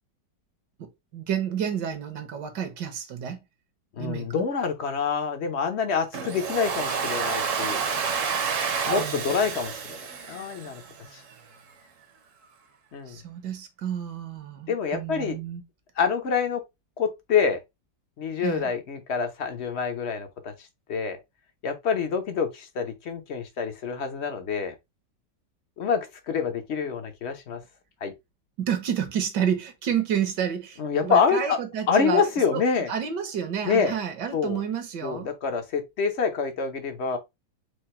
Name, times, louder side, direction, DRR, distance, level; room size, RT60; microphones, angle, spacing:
voice 1, 0.8-3.4 4.0-4.4 8.9-9.3 13.1-15.6 18.4-18.7 28.6-32.3 32.5-32.6 32.9-35.3, right 8 dB, 70° right, 1.5 m, -30 dB
voice 2, 4.0-7.8 8.9-10.0 10.3-10.8 11.1-11.2 12.9-13.2 14.7-15.4 16.0-16.6 17.0-17.6 18.2-20.5 20.9-21.2 21.6-24.7 25.8-27.6 28.0-28.1 30.8-31.6 31.9-32.9 33.6-33.9 34.3-34.6 35.0-37.2, left 6 dB, 55° left, 0.8 m, -26 dB
Domestic sounds home sounds, 6.1-11.1, right 6 dB, 55° right, 1.0 m, -29 dB
4.9 x 2.2 x 4.2 m
omnidirectional pair, 2.0 m